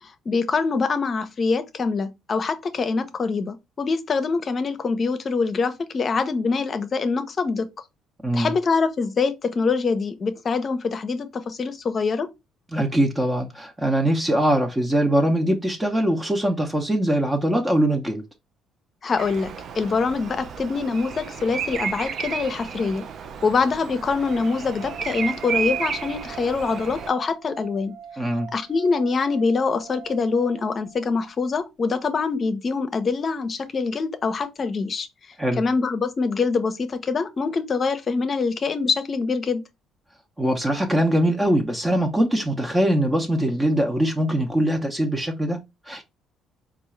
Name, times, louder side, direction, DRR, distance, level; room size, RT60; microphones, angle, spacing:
voice 1, 0.0-7.7 8.3-12.3 19.0-23.0 23.4-28.0 28.5-35.1 35.6-39.6, left 4 dB, 45° left, 0.6 m, -24 dB
voice 2, 12.7-18.2 28.2-28.5 35.4-35.6 40.4-46.0, right 1 dB, 15° right, 0.8 m, -22 dB
Bird vocalization bird call bird song, 19.2-27.1, right 7 dB, 55° right, 0.5 m, -32 dB
sound 1, 24.1-31.2, right 7 dB, 70° right, 0.9 m, -42 dB
4.5 x 2.4 x 3.2 m
hypercardioid pair, 50°, 0 cm